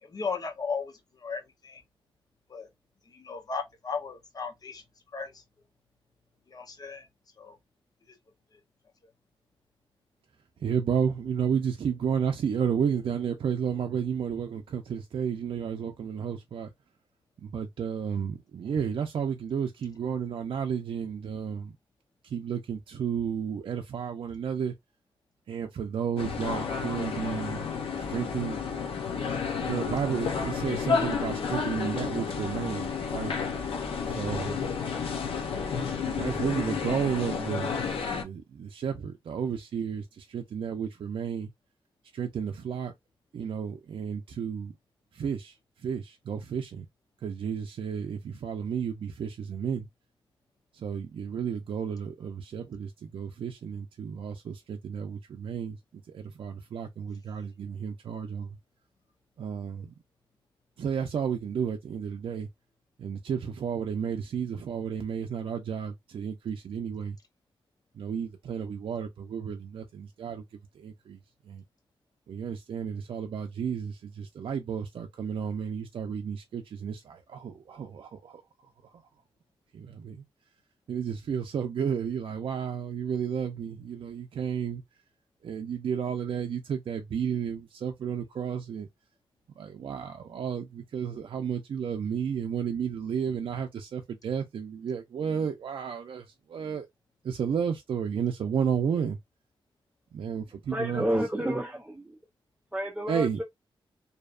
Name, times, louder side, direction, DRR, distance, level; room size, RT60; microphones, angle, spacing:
voice 1, 0.0-1.8 2.5-2.7 3.1-4.8 5.1-5.4 6.5-7.1 7.4-7.6 8.1-8.2, left 5 dB, 45° left, 0.7 m, -36 dB
voice 2, 10.6-16.7 17.4-21.7 22.3-24.7 25.5-27.7 28.1-28.6 29.6-33.4 34.1-34.5 36.0-37.7 38.1-41.5 42.1-42.9 43.3-44.7 45.2-45.5 45.8-46.8 47.2-49.9 50.8-55.8 56.1-58.5 59.4-59.9 60.8-62.5 63.0-67.2 68.0-70.4 70.8-71.2 71.5-71.6 72.3-78.3 79.7-80.2 80.9-84.8 85.4-88.9 89.6-96.2 96.5-96.9 97.2-99.2 100.1-101.0 103.1-103.4, right 7 dB, 70° right, 0.4 m, -32 dB
sound 1, 26.2-38.2, left 5 dB, 90° left, 0.6 m, -31 dB
voice 3, 100.7-102.1 102.7-103.4, equal, 10° right, 0.5 m, -30 dB
2.7 x 2.1 x 2.3 m
wide cardioid pair, 95°, 9 cm